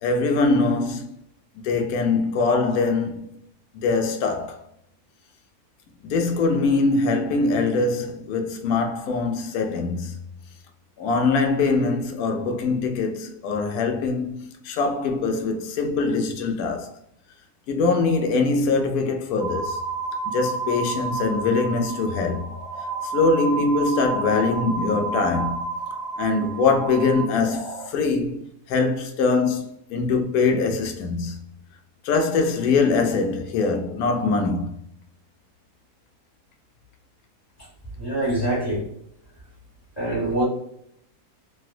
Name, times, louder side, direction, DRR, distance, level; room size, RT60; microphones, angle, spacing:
voice 1, 0.0-1.1 1.6-3.4 3.7-4.6 6.0-10.2 11.0-17.0 17.7-19.8 20.3-22.5 23.1-25.6 26.2-31.4 32.0-34.7, left 3 dB, 75° left, 1.1 m, -23 dB
sound 1, 19.4-27.9, right 4 dB, 70° right, 1.0 m, -30 dB
voice 2, 38.0-38.8 40.0-40.4, right 1 dB, 20° left, 1.2 m, -24 dB
3.2 x 2.6 x 2.5 m
omnidirectional pair, 1.6 m